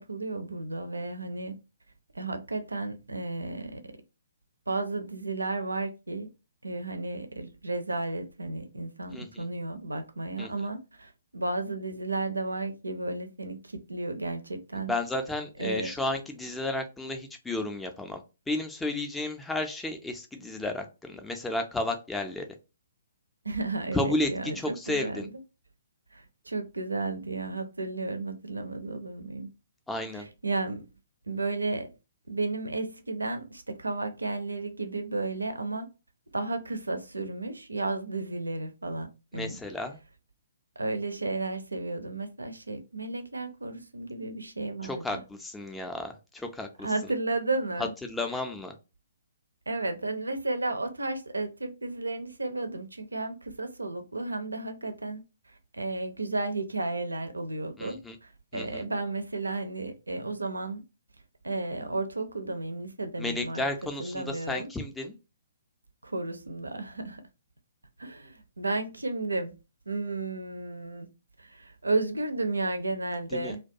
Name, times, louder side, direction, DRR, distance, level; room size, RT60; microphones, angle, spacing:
voice 1, 0.0-1.5 2.1-3.8 4.7-6.3 6.6-14.9 15.6-15.9 23.4-25.3 26.1-29.5 30.1-30.9 31.3-31.9 32.3-35.9 36.3-39.6 40.8-45.2 46.8-47.9 49.7-55.2 55.7-60.8 61.4-63.6 64.0-64.7 66.0-67.2 68.0-69.6 69.9-71.1 71.4-73.6, right 2 dB, 85° right, 0.4 m, -33 dB
voice 2, 9.1-9.4 10.4-10.5 14.9-22.5 23.9-24.3 24.6-25.3 29.9-30.3 39.3-40.0 44.8-46.9 48.0-48.8 57.8-58.2 58.5-58.8 63.2-65.1 73.3-73.5, left 2 dB, 5° left, 0.4 m, -33 dB
2.2 x 2.2 x 2.6 m
figure-of-eight pair, 130°, 0 cm